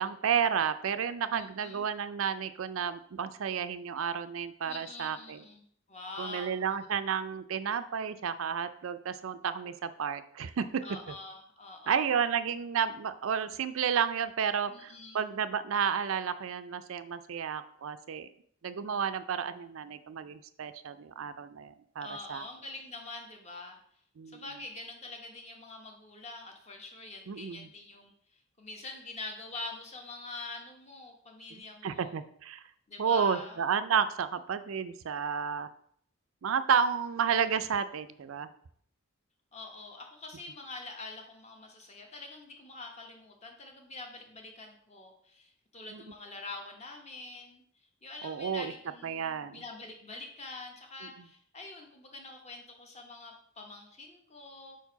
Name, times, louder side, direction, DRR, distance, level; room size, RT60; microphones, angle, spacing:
voice 1, 0.0-5.4 6.2-10.8 11.9-18.3 18.6-22.5 24.2-24.4 27.3-27.7 31.8-32.6 33.0-35.7 36.4-38.5 45.9-46.0 48.2-48.7 49.0-49.6 51.0-51.1, right 7 dB, 70° right, 12 dB, 0.4 m, -31 dB
voice 2, 1.3-1.9 4.7-6.9 10.8-12.1 14.7-15.2 22.0-32.1 32.9-33.6 39.5-54.8, left 3 dB, 30° left, 2 dB, 1.1 m, -45 dB
4.6 x 4.5 x 5.7 m, 0.63 s
head